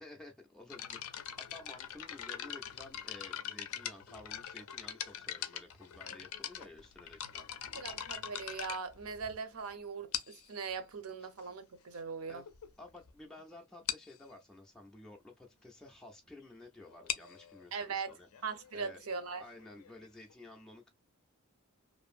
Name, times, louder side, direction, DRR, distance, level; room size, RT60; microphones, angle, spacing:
voice 1, 0.0-7.5 11.2-11.3 12.3-12.4 12.8-18.3 18.7-19.0 19.4-20.9, left 2 dB, 5° left, 0.3 m, -53 dB
sound 1, 0.7-9.5 10.1-10.6 11.4-11.5 12.1-12.2 12.5-12.7 13.0-13.1 13.4-13.5 13.9-14.2 16.8-20.3, left 10 dB, 75° left, 0.4 m, -42 dB
voice 2, 7.7-12.4 17.7-18.1 18.4-19.4, right 5 dB, 75° right, 0.6 m, -40 dB
2.5 x 2.5 x 2.4 m
head